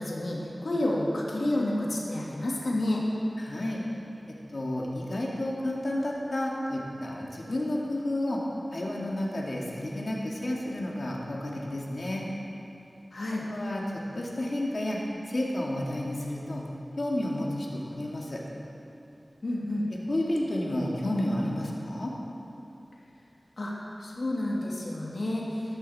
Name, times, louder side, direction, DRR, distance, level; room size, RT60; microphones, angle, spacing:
voice 1, 0.0-3.0 13.1-13.5 19.4-19.9 23.6-23.7 24.0-25.4, left 1 dB, 80° left, -4 dB, 2.3 m, -29 dB
voice 2, 3.4-3.8 4.3-8.4 8.7-12.2 13.5-15.0 15.3-16.6 17.0-18.4 20.1-22.1, left 1 dB, 60° left, -3 dB, 2.2 m, -31 dB
13.5 x 13.0 x 4.3 m, 2.9 s
wide cardioid pair, 70°, 0 cm